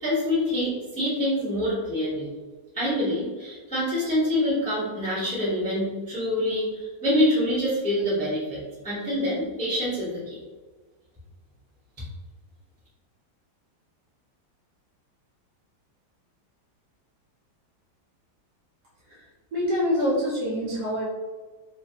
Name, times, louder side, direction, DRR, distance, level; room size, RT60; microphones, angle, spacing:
voice 1, 0.0-2.3 2.7-10.4, left 1 dB, 10° left, -8 dB, 0.5 m, -26 dB
voice 2, 19.5-21.0, equal, 65° right, -5 dB, 1.0 m, -25 dB
3.1 x 2.5 x 2.7 m, 1.4 s
omnidirectional pair, 2.2 m